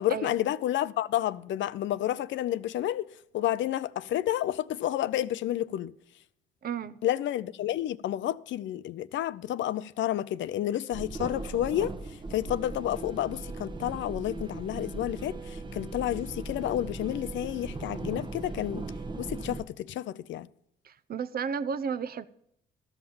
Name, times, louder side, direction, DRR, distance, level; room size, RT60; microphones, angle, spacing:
voice 1, 0.0-3.0 3.3-5.9 7.0-11.9 12.3-18.8 19.2-20.5, left 12 dB, 70° left, 0.5 m, -30 dB
voice 2, 6.6-7.0 20.8-22.3, right 6 dB, 50° right, 0.6 m, -33 dB
sound 1, 10.9-19.6, right 3 dB, 25° right, 1.0 m, -38 dB
13.0 x 5.8 x 7.0 m
cardioid pair, 90°, 20 cm